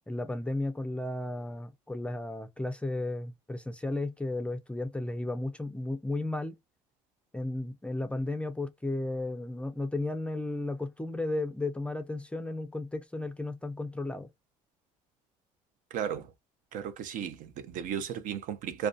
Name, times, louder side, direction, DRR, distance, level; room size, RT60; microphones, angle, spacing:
voice 1, 0.1-6.6 7.3-14.3, left 2 dB, 10° left, 0.4 m, -34 dB
voice 2, 15.9-16.3 16.7-18.9, right 8 dB, 65° right, 0.5 m, -35 dB
2.3 x 2.2 x 2.5 m
cardioid pair, 100°, 15 cm